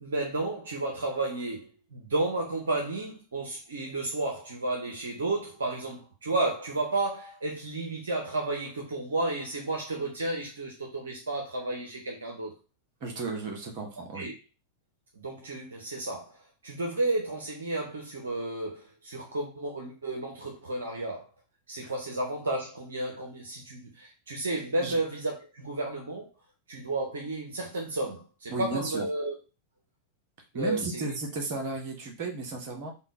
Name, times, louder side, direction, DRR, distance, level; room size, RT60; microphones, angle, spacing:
voice 1, 0.0-12.6 14.0-14.3 15.2-21.3 21.7-26.3 26.7-29.4 30.5-31.1, right 2 dB, 65° right, 0.7 m, -32 dB
voice 2, 13.0-14.3 21.8-21.9 24.8-24.9 28.5-29.1 30.5-32.9, right 3 dB, 45° right, 1.0 m, -34 dB
3.6 x 2.2 x 3.6 m
figure-of-eight pair, 90°, 0 cm